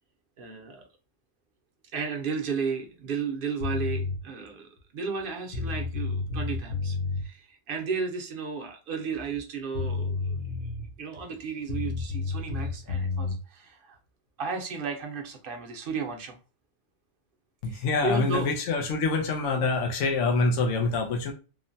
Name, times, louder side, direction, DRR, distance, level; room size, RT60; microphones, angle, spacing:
voice 1, 0.4-0.8 1.9-10.4 11.0-14.0 14.4-16.4 17.7-18.5, right 5 dB, 55° right, 0.7 m, -34 dB
sound 1, 3.6-4.2 5.2-5.3 5.5-7.2 9.4-9.5 9.7-10.9 11.7-13.4, left 4 dB, 45° left, 0.7 m, -30 dB
voice 2, 17.6-21.3, left 3 dB, 85° left, 1.0 m, -26 dB
3.1 x 2.1 x 2.6 m
omnidirectional pair, 1.2 m